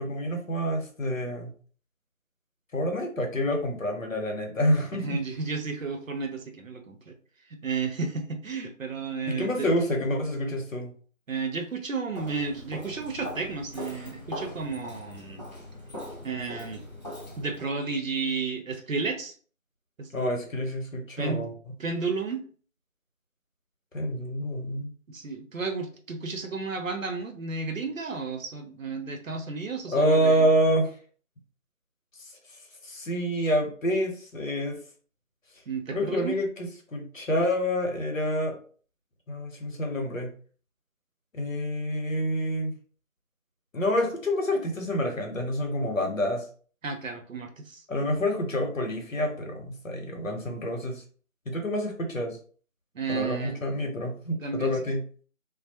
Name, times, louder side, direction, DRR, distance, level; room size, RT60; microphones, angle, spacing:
voice 1, 0.0-1.5 2.7-5.2 9.3-10.9 20.1-21.7 23.9-24.9 29.9-30.9 32.8-34.8 35.9-38.6 39.3-40.3 41.3-42.7 43.7-46.5 47.9-51.0 51.5-52.4 53.1-55.0, equal, 70° left, 2 dB, 0.9 m, -27 dB
voice 2, 4.9-7.2 7.5-9.7 11.3-15.4 16.2-16.8 17.4-19.3 20.0-20.1 21.2-21.5 21.8-22.4 25.1-30.5 35.7-36.4 46.8-48.1 52.9-53.6 54.4-54.8, right 4 dB, 75° right, 5 dB, 0.7 m, -32 dB
Walk footsteps, 12.1-17.7, left 1 dB, 35° left, 0.7 m, -41 dB
2.2 x 2.0 x 2.8 m, 0.43 s
figure-of-eight pair, 175°, 40 cm